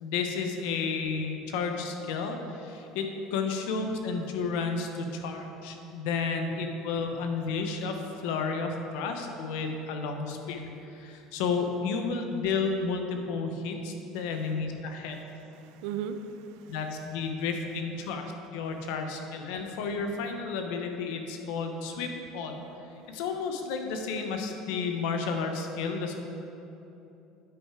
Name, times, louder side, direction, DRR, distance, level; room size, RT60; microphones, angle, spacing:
voice 1, 0.0-15.3 16.7-22.6 23.1-26.1, left 4 dB, 80° left, 4 dB, 0.9 m, -32 dB
voice 2, 15.1-16.8, right 7 dB, 70° right, 9 dB, 0.5 m, -38 dB
9.2 x 5.6 x 4.9 m, 2.9 s
cardioid pair, 155°, 0 cm